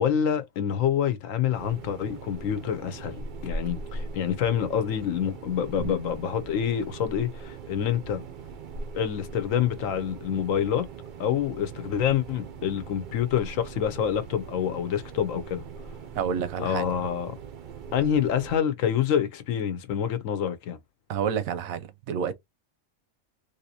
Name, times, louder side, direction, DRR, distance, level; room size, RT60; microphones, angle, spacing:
voice 1, 0.0-8.2 8.9-10.9 11.2-15.6 16.6-17.4 17.9-20.8, left 9 dB, 80° left, 1.0 m, -27 dB
sound 1, 1.5-18.6, right 4 dB, 65° right, 0.5 m, -41 dB
voice 2, 16.1-16.9 21.1-22.3, right 7 dB, 90° right, 1.1 m, -29 dB
3.5 x 2.7 x 2.7 m
omnidirectional pair, 1.4 m